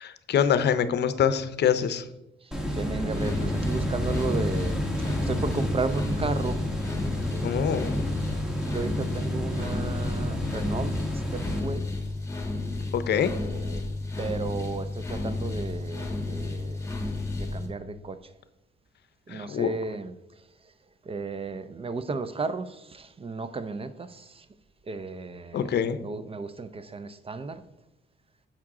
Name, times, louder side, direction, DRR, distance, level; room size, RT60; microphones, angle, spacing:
voice 1, 0.0-2.1 7.4-8.0 12.9-13.3 19.3-19.7 25.5-26.0, left 8 dB, 60° left, 0.7 m, -25 dB
voice 2, 2.4-6.6 7.3-8.0 8.7-11.9 13.3-13.8 14.2-16.9 17.3-18.3 19.3-20.7 21.0-24.5 24.8-27.6, right 3 dB, 30° right, 0.5 m, -34 dB
sound 1, 2.5-11.6, equal, 5° right, 1.4 m, -30 dB
sound 2, 3.1-17.7, left 2 dB, 15° left, 1.7 m, -32 dB
7.4 x 5.8 x 3.7 m
cardioid pair, 90°, 20 cm